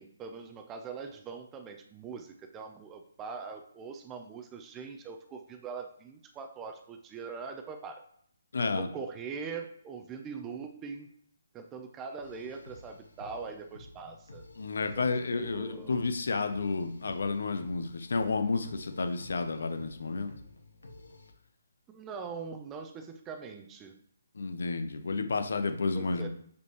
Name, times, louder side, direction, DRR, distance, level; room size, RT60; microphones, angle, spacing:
voice 1, 0.0-8.0 8.6-11.1 11.5-14.4 15.0-15.1 15.3-16.0 21.9-24.0 25.9-26.3, right 5 dB, 15° right, 5 dB, 0.5 m, -42 dB
voice 2, 8.5-8.9 14.6-20.3 24.3-26.3, left 4 dB, 75° left, 8 dB, 0.8 m, -31 dB
sound 1, 12.2-21.3, left 2 dB, 90° left, 1.3 m, -52 dB
6.9 x 5.2 x 3.2 m, 0.65 s
hypercardioid pair, 155°, 0 cm